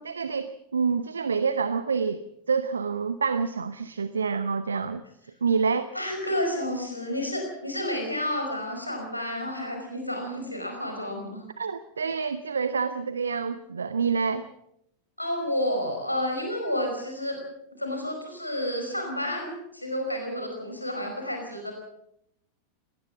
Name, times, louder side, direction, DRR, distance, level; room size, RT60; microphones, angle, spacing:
voice 1, 0.1-2.2 2.5-5.0 5.4-5.9 11.6-14.5, right 5 dB, 70° right, 14 dB, 0.8 m, -27 dB
voice 2, 5.9-11.4 15.2-17.4 17.8-21.7, left 1 dB, 85° left, 3 dB, 5.0 m, -30 dB
20.5 x 18.5 x 7.3 m, 0.78 s
figure-of-eight pair, 90°, 0 cm